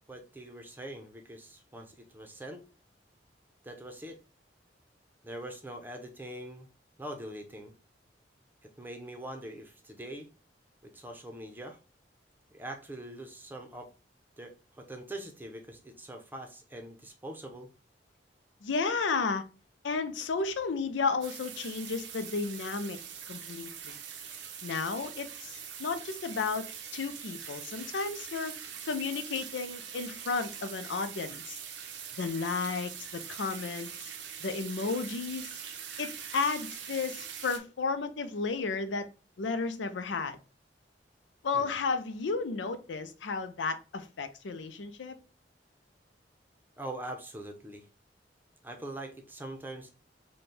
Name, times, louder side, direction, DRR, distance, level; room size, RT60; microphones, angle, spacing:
voice 1, 0.1-2.6 3.6-4.2 5.2-6.7 7.0-7.7 8.6-10.3 10.8-11.8 12.5-13.9 14.4-17.7 41.5-41.7 46.8-47.9 48.6-49.9, right 1 dB, 10° right, 0.6 m, -43 dB
voice 2, 18.6-19.4 19.8-23.0 23.3-23.9 24.6-26.7 26.9-28.6 28.9-31.6 32.2-33.9 34.4-35.5 36.0-39.1 39.4-40.4 41.4-45.1, left 4 dB, 90° left, 0.5 m, -33 dB
sound 1, 21.2-37.6, right 8 dB, 75° right, 0.6 m, -43 dB
4.3 x 2.2 x 3.3 m
head